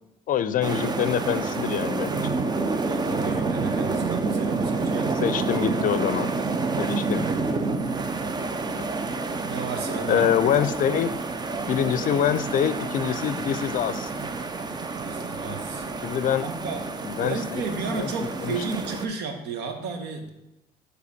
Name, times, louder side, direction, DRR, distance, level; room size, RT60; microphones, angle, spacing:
voice 1, 0.3-2.3 5.1-6.3 6.8-7.2 10.1-11.1 11.7-14.1 16.0-16.5 17.0-17.6 18.0-18.1 18.4-18.6, left 9 dB, 55° left, 13 dB, 0.5 m, -25 dB
sound 1, 0.6-19.1, right 3 dB, 25° right, 0.5 m, -28 dB
voice 2, 2.8-5.1 9.4-10.3 14.9-15.9 16.4-16.8 17.2-20.3, right 4 dB, 80° right, 5 dB, 1.2 m, -33 dB
sound 2, 7.7-17.9, right 2 dB, 50° right, 2.3 m, -50 dB
7.5 x 3.4 x 5.8 m, 0.93 s
cardioid pair, 110°, 17 cm